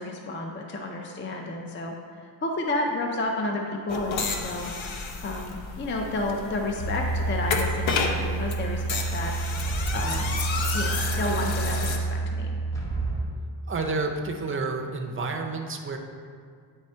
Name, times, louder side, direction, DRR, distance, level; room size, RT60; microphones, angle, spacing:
voice 1, 0.0-4.7 5.2-9.3 9.9-10.4 10.7-12.6, left 2 dB, 25° left, 2 dB, 0.4 m, -31 dB
sound 1, 3.9-12.0, left 4 dB, 75° left, 0.8 m, -31 dB
sound 2, 6.8-13.2, right 3 dB, 5° left, 0.9 m, -29 dB
voice 2, 13.7-16.0, right 3 dB, 30° right, 3 dB, 0.5 m, -30 dB
8.9 x 3.3 x 4.4 m, 2.1 s
wide cardioid pair, 165°, 46 cm